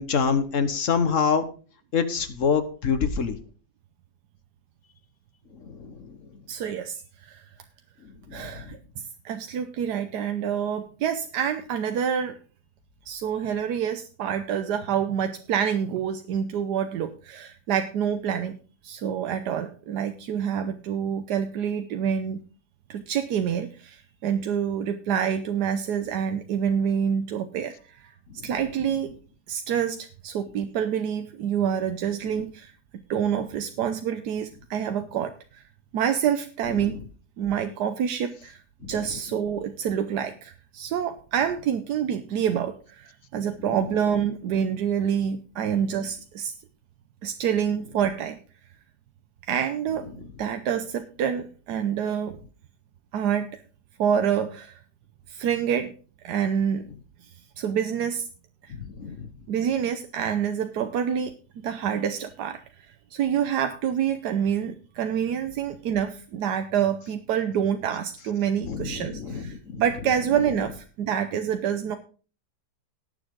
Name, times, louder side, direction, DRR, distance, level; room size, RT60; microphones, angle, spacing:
voice 1, 0.0-1.4 1.9-3.4 5.7-6.1 8.3-8.6 28.4-28.5 32.3-32.4 38.8-38.9 58.8-59.3 68.6-69.8, left 6 dB, 50° left, 10 dB, 1.5 m, -26 dB
voice 2, 6.5-7.5 8.3-12.4 13.1-18.6 18.8-22.4 22.9-28.1 28.4-29.1 29.5-32.7 33.1-35.6 35.9-37.0 37.4-46.5 47.2-48.4 49.4-50.1 50.4-52.4 53.1-53.5 54.0-54.8 55.3-55.9 56.2-56.8 57.6-58.3 58.6-58.7 59.5-61.3 61.6-72.0, right 8 dB, 85° right, 8 dB, 1.3 m, -27 dB
18.0 x 7.2 x 3.6 m, 0.38 s
omnidirectional pair, 1.7 m